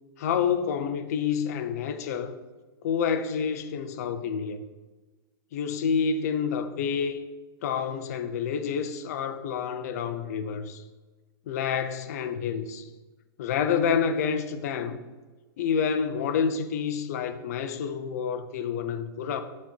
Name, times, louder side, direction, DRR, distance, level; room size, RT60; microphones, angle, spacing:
voice 1, 0.2-2.3 2.8-4.6 5.5-7.2 7.6-10.8 11.5-12.9 13.4-15.0 15.6-19.4, left 6 dB, 40° left, 0.7 m, -28 dB
12.5 x 4.3 x 4.5 m
hypercardioid pair, 175°, 13 cm